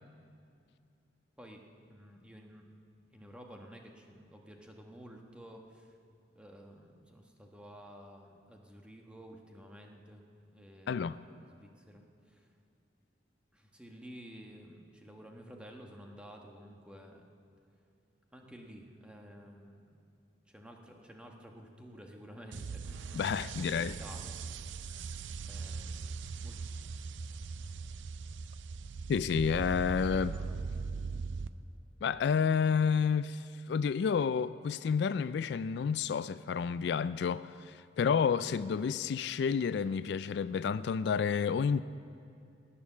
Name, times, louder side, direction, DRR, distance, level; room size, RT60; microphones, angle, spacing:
voice 1, 1.4-2.6 3.1-6.0 6.3-10.2 10.5-12.5 13.5-17.3 18.3-20.1 20.5-23.1 23.7-24.3 25.4-26.6 30.1-30.5, equal, 5° right, 1.2 m, -52 dB
sound 1, 22.5-31.5, right 4 dB, 85° right, 0.5 m, -40 dB
voice 2, 23.1-23.9 29.1-30.4 32.0-41.8, left 6 dB, 65° left, 0.3 m, -30 dB
18.5 x 8.5 x 7.1 m
head